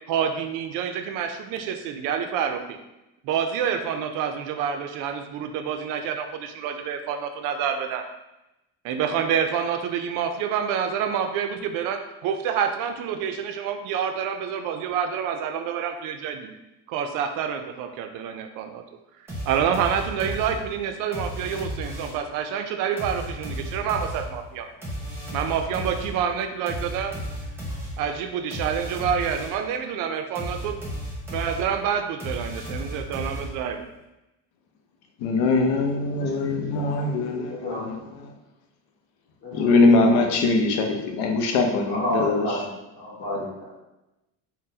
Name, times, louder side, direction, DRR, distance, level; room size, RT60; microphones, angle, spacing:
voice 1, 0.1-2.8 3.2-8.0 8.8-16.6 16.9-18.8 19.5-24.7 25.3-27.2 28.0-30.8 31.3-33.9, right 8 dB, 60° right, 6 dB, 0.5 m, -27 dB
sound 1, 19.3-22.3 23.0-29.7 30.3-33.9, equal, 5° right, 0.8 m, -34 dB
voice 2, 35.2-38.3 39.5-42.7 43.2-43.4, left 3 dB, 75° left, 3 dB, 0.7 m, -22 dB
voice 3, 37.6-37.9 39.4-39.7 41.9-42.6 43.0-43.8, equal, 25° left, -7 dB, 1.2 m, -30 dB
3.8 x 2.1 x 2.7 m, 0.95 s
cardioid pair, 140°, 37 cm